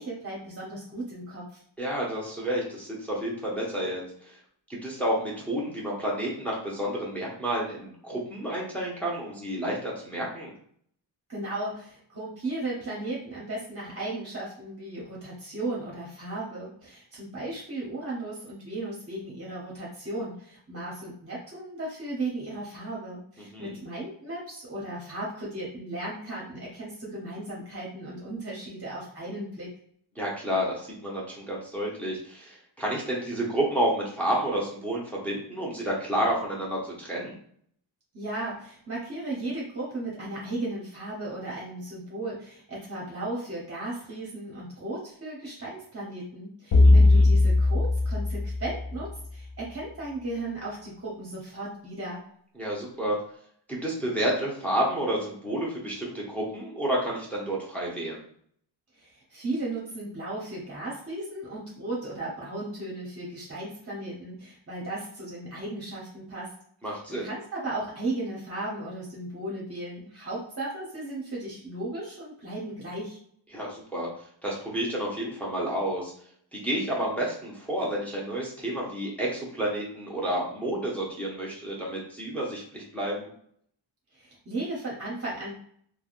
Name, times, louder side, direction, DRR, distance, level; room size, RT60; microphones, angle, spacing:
voice 1, 0.0-1.6 11.3-29.7 38.1-52.2 58.9-66.5 66.8-73.2 84.1-85.6, right 2 dB, 30° right, -5 dB, 0.8 m, -36 dB
voice 2, 1.8-4.0 4.8-10.5 23.5-23.7 30.2-37.3 46.8-46.9 52.6-53.2 53.7-58.2 66.8-67.3 73.5-74.1 74.4-76.1 76.5-83.3, right 1 dB, 5° left, -4 dB, 0.8 m, -30 dB
sound 1, 46.7-49.2, left 2 dB, 70° left, 0.6 m, -19 dB
3.3 x 2.2 x 2.5 m, 0.64 s
wide cardioid pair, 110°, 46 cm